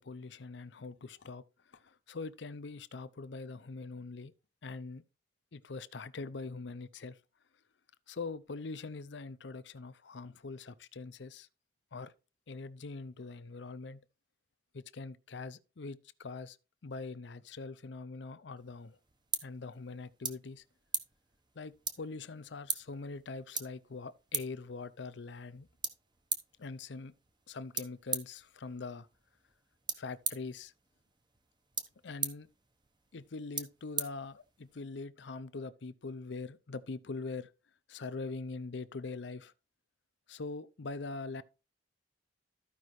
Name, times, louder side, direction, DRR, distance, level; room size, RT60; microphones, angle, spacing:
voice 1, 0.0-1.4 1.7-4.3 4.6-5.0 5.5-7.2 8.1-11.5 11.9-12.1 12.5-14.0 14.7-16.6 16.8-19.0 19.4-20.6 21.6-25.7 26.6-27.1 27.5-29.1 30.0-30.7 32.0-32.5 33.1-37.5 37.9-39.5 40.3-41.4, left 3 dB, 70° left, 0.6 m, -43 dB
sound 1, 18.6-34.8, right 5 dB, 25° right, 0.9 m, -42 dB
14.0 x 5.3 x 3.1 m
head